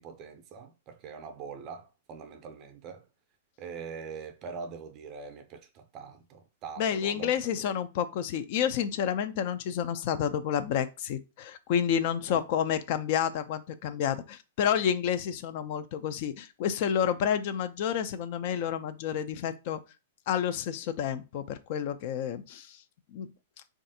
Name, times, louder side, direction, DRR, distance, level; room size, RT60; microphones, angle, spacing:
voice 1, 0.0-3.1 3.6-7.3 7.6-7.7 12.3-12.4, right 5 dB, 40° right, 0.4 m, -43 dB
voice 2, 6.8-19.8 20.3-22.8 23.1-23.3, left 8 dB, 55° left, 0.3 m, -30 dB
3.3 x 2.4 x 2.7 m
hypercardioid pair, 115°, 0 cm